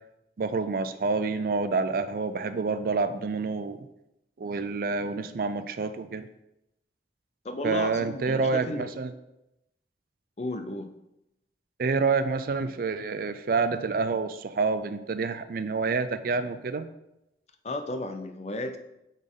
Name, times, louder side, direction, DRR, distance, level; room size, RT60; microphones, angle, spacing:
voice 1, 0.4-3.9 4.4-6.3 7.6-9.1 11.8-16.9, right 4 dB, 50° right, 11 dB, 0.4 m, -28 dB
voice 2, 7.4-8.8 10.4-10.9 17.6-18.8, left 1 dB, 35° left, 8 dB, 0.5 m, -33 dB
8.3 x 4.0 x 3.7 m, 0.87 s
head